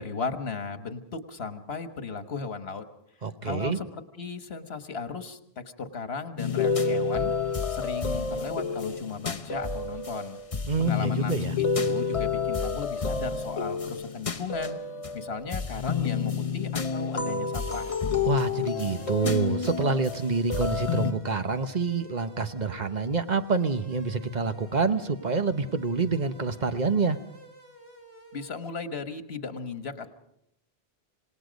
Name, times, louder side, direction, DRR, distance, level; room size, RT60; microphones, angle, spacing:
voice 1, 0.0-2.8 3.4-7.3 7.7-10.4 10.8-14.8 15.1-18.0 28.3-30.1, left 4 dB, 75° left, 9 dB, 1.6 m, -36 dB
voice 2, 3.2-3.8 10.7-11.5 18.2-27.2, right 4 dB, 45° right, 9 dB, 1.1 m, -27 dB
sound 1, 6.4-21.1, left 5 dB, 35° left, 0.9 m, -29 dB
sound 2, 18.7-28.5, right 1 dB, 30° right, 2.7 m, -50 dB
27.0 x 18.5 x 5.2 m, 0.78 s
omnidirectional pair, 1.1 m